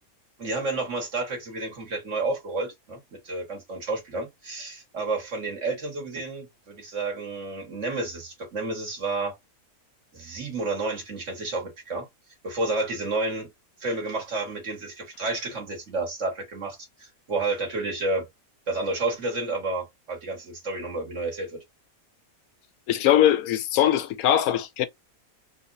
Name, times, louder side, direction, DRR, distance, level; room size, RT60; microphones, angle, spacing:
voice 1, 0.4-9.4 10.1-12.1 12.4-13.5 13.8-18.3 18.7-21.6, right 3 dB, 55° right, 2.0 m, -30 dB
voice 2, 22.9-24.9, left 11 dB, 85° left, 1.1 m, -21 dB
4.0 x 2.6 x 2.7 m
omnidirectional pair, 1.5 m